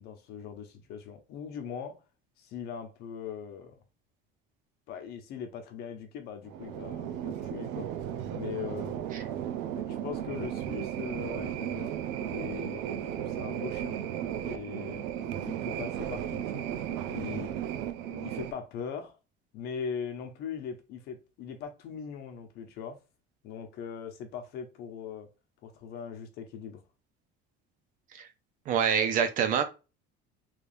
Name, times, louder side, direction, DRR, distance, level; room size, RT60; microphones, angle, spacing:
voice 1, 0.0-2.0 2.4-3.8 4.9-7.9 8.3-8.9 9.8-12.9 13.2-14.0 14.4-15.1 15.4-16.7 17.1-17.5 18.1-19.2 19.5-23.0 23.4-25.3 25.6-26.8, left 7 dB, 50° left, 0.9 m, -40 dB
sound 1, 6.5-18.5, right 10 dB, 90° right, 0.6 m, -35 dB
voice 2, 28.7-29.6, right 7 dB, 40° right, 0.5 m, -26 dB
3.4 x 3.2 x 2.6 m
cardioid pair, 175°, 20 cm